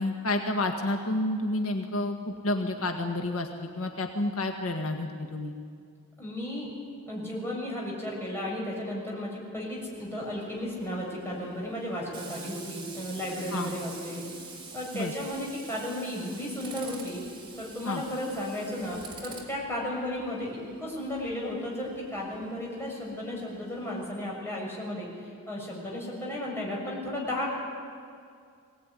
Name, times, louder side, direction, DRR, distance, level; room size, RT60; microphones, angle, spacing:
voice 1, 0.0-3.5 3.8-5.5 13.5-13.7 14.9-15.1 17.9-18.0, left 2 dB, 75° left, 3 dB, 1.8 m, -30 dB
voice 2, 6.2-6.7 7.1-14.2 14.7-17.2 17.6-25.1 25.5-27.5, left 1 dB, 10° left, -4 dB, 6.8 m, -34 dB
Tools, 9.8-24.1, right 3 dB, 25° right, 3.8 m, -46 dB
22.5 x 18.0 x 9.9 m, 2.2 s
head